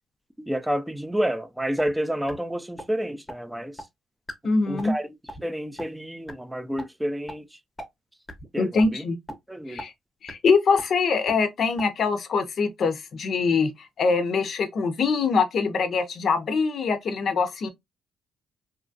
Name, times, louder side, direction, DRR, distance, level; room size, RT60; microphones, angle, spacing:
voice 1, 0.5-3.8 4.7-5.1 5.4-7.5 8.5-9.0 9.5-9.8, equal, 5° right, 0.4 m, -29 dB
sound 1, 1.8-1.9 2.3-2.4 2.8-2.9 3.3-3.4 3.8-3.9 4.3-4.4 4.8-5.0 5.3-5.4 5.8-5.9 6.3-6.4 6.8-6.9 7.3-7.4 7.8-7.9 8.3-8.5 8.8-8.9 9.3-9.4 9.8-9.9 10.3-10.4 10.8-10.9 11.3-11.4 11.8-11.9, equal, 15° left, 0.7 m, -36 dB
voice 2, 4.4-4.9 8.6-9.2 9.7-9.9 10.2-13.7 14.0-17.7, left 4 dB, 60° left, 0.5 m, -23 dB
2.9 x 2.3 x 2.5 m
cardioid pair, 90°, 0 cm